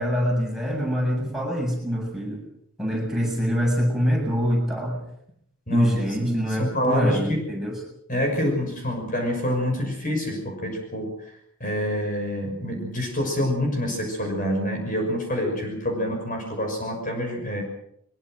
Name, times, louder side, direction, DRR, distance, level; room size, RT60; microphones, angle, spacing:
voice 1, 0.0-2.4 2.8-5.0 5.7-7.8, equal, ahead, -2 dB, 7.6 m, -24 dB
voice 2, 5.7-7.4 8.1-11.2 11.6-17.6, equal, 35° left, 2 dB, 6.2 m, -27 dB
23.0 x 22.5 x 6.5 m, 0.72 s
head